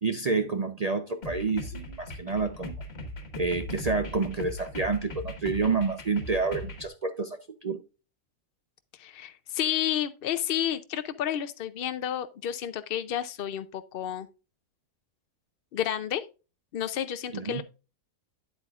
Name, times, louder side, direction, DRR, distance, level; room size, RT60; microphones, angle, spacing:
voice 1, 0.0-2.7 3.4-7.8 17.3-17.6, right 4 dB, 55° right, 0.4 m, -29 dB
sound 1, 1.2-6.9, left 1 dB, 45° left, 1.5 m, -39 dB
voice 2, 8.9-14.3 15.7-16.3 16.7-17.6, left 10 dB, 75° left, 0.5 m, -31 dB
9.6 x 8.0 x 2.4 m
omnidirectional pair, 1.6 m